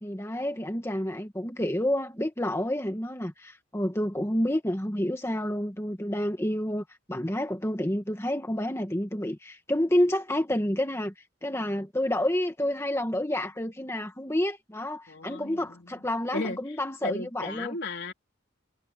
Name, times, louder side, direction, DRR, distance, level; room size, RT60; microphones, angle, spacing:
voice 1, 0.0-11.1 11.4-17.7, left 1 dB, 15° left, 1.6 m, -29 dB
voice 2, 15.1-16.0 16.3-16.8 17.0-18.1, left 2 dB, 55° left, 3.8 m, -35 dB
head